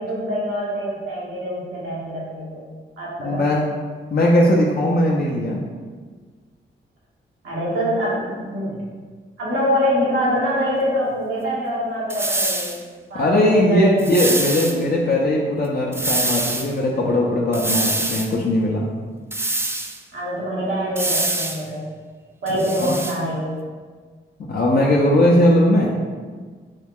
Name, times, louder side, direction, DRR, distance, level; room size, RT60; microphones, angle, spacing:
voice 1, 0.0-2.7 3.0-3.5 7.4-8.8 9.4-12.8 13.1-14.6 20.1-21.8 22.4-23.5, equal, 90° right, -8 dB, 1.2 m, -24 dB
voice 2, 3.2-3.6 4.1-5.6 13.1-18.8 22.8-22.9 24.5-25.9, left 1 dB, 50° left, -4 dB, 0.5 m, -19 dB
sound 1, 12.1-12.8 14.0-14.8 15.9-16.7 17.5-18.3 19.3-20.0 21.0-21.6 22.5-23.2, right 2 dB, 10° right, 0.3 m, -24 dB
3.2 x 2.3 x 3.5 m, 1.5 s
cardioid pair, 55°, 21 cm